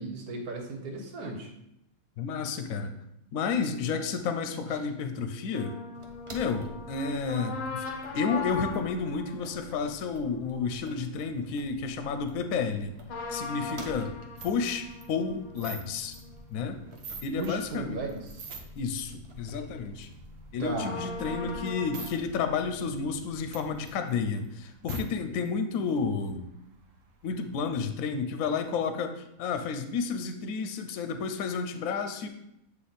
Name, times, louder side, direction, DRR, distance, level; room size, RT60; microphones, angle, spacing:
voice 1, 0.0-1.5 17.4-18.5 20.6-21.1, right 2 dB, 85° right, 2 dB, 1.5 m, -35 dB
voice 2, 2.2-2.9 3.3-5.8 6.3-7.8 8.1-13.0 13.3-14.1 14.4-16.2 16.5-16.8 17.2-18.0 18.7-20.1 20.5-26.5 27.2-32.3, left 5 dB, 70° left, 8 dB, 1.0 m, -31 dB
sound 1, 5.5-11.4 13.1-18.4 18.8-18.9 20.8-22.1, left 3 dB, 40° left, 0.6 m, -40 dB
sound 2, 6.0-23.9, equal, 45° right, 0.4 m, -49 dB
sound 3, 14.4-17.5 17.9-18.9 19.4-22.1 22.4-22.5 22.8-25.0 25.5-25.6 25.7-27.7, right 4 dB, 65° right, 1.1 m, -48 dB
7.7 x 3.0 x 4.0 m, 0.81 s
omnidirectional pair, 1.5 m